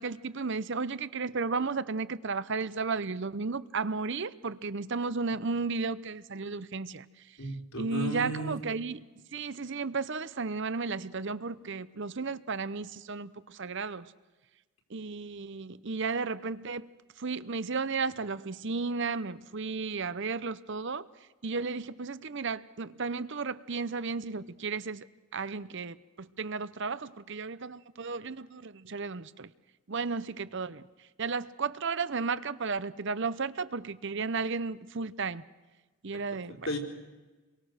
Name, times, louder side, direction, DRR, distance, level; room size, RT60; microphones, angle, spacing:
voice 1, 0.0-7.1 7.4-7.5 7.8-9.0 9.3-14.1 14.9-16.9 17.2-21.1 21.4-25.1 25.3-29.5 29.9-30.8 31.2-35.4 36.0-36.7, right 4 dB, 55° right, 0.8 m, -34 dB
voice 2, 7.4-8.6 36.7-36.8, right 1 dB, 70° left, 4.3 m, -34 dB
29.0 x 23.0 x 6.6 m
head